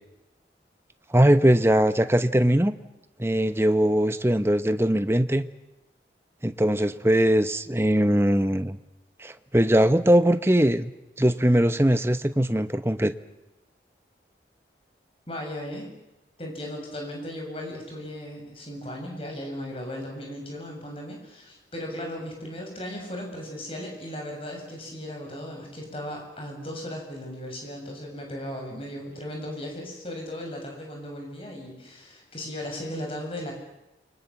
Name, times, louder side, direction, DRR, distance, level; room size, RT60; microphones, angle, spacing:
voice 1, 1.1-2.7 3.2-5.4 6.4-8.8 9.2-10.9 11.2-13.1, right 1 dB, 15° right, 10 dB, 1.0 m, -21 dB
voice 2, 15.3-15.9 16.4-33.5, left 1 dB, 30° left, 1 dB, 7.4 m, -36 dB
29.5 x 24.0 x 7.2 m, 0.94 s
head